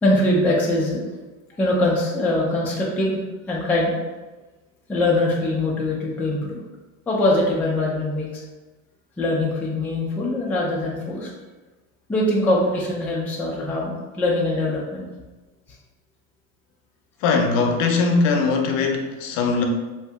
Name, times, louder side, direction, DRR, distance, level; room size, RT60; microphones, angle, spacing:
voice 1, 0.0-1.0 1.6-3.2 3.5-3.9 4.9-6.6 7.1-8.4 9.2-11.3 12.1-15.0, left 1 dB, 5° left, -4 dB, 0.4 m, -22 dB
voice 2, 17.2-19.6, left 4 dB, 55° left, 3 dB, 0.6 m, -20 dB
2.8 x 2.6 x 3.3 m, 1.2 s
supercardioid pair, 125°, 40 cm